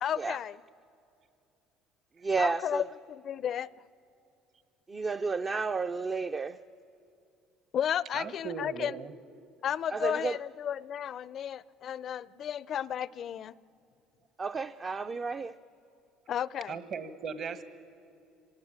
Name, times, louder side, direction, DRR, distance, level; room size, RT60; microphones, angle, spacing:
voice 1, 0.0-0.6 2.4-3.7 7.7-8.9 9.6-13.5 16.3-16.8, left 9 dB, 50° left, 20 dB, 0.5 m, -33 dB
voice 2, 2.2-2.8 4.9-6.6 9.9-10.4 14.4-15.5, right 4 dB, 30° right, 8 dB, 0.5 m, -31 dB
voice 3, 8.1-9.1 16.7-17.6, right 5 dB, 50° right, 12 dB, 1.5 m, -38 dB
26.5 x 18.0 x 8.8 m, 2.7 s
cardioid pair, 105°, 0 cm